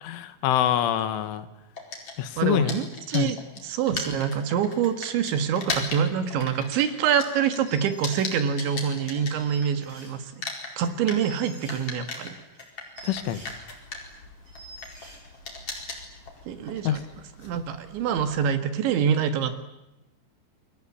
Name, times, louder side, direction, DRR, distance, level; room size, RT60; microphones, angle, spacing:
voice 1, 0.0-1.5 2.2-2.8 3.1-3.3 13.0-13.4 16.9-17.0, left 11 dB, 80° left, 11 dB, 3.9 m, -25 dB
sound 1, 1.8-9.9 10.2-18.5, left 3 dB, 30° left, 5.2 m, -38 dB
voice 2, 2.4-10.2 10.8-12.3 16.5-17.0 17.4-19.5, right 8 dB, 75° right, 9 dB, 3.9 m, -26 dB
sound 2, 7.7-8.4 8.8-8.9 9.3-10.5 10.8-10.9 11.2-13.5 13.9-14.2 14.5-15.2, right 2 dB, 40° right, 8.1 m, -47 dB
28.5 x 22.5 x 8.5 m, 0.92 s
omnidirectional pair, 5.5 m